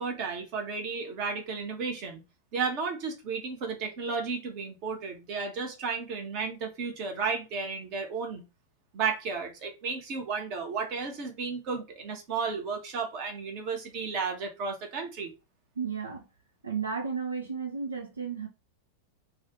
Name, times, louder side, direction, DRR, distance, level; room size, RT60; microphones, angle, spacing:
voice 1, 0.0-2.2 2.5-8.4 8.9-15.3, right 5 dB, 40° right, 1.1 m, -33 dB
voice 2, 15.8-16.2 16.6-18.5, right 6 dB, 75° right, 0.4 m, -33 dB
3.1 x 2.4 x 2.9 m
figure-of-eight pair, 90°, 0 cm